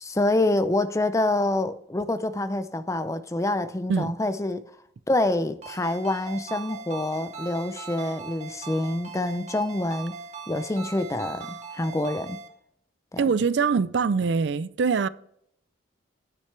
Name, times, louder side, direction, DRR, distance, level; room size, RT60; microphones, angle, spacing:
voice 1, 0.0-4.6 5.1-10.2 10.5-12.4 13.1-13.2, left 2 dB, 15° left, 0.5 m, -26 dB
Ringtone, 5.6-12.5, right 5 dB, 35° right, 1.7 m, -40 dB
voice 2, 13.2-15.1, right 5 dB, 65° right, 0.4 m, -23 dB
9.7 x 9.6 x 3.3 m
head